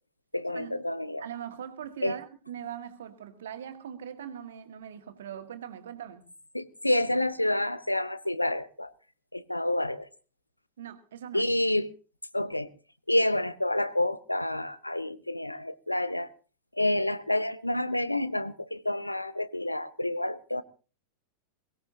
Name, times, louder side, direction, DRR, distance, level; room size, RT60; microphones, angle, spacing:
voice 1, 0.3-1.3 2.0-2.2 6.5-8.9 9.3-10.1 11.3-11.9 12.3-12.7 13.1-16.3 16.7-20.6, left 1 dB, 85° left, 0.7 m, -28 dB
voice 2, 1.2-6.3 10.8-11.5, right 9 dB, 60° right, 1.8 m, -41 dB
22.5 x 16.5 x 2.8 m
figure-of-eight pair, 90°, 0 cm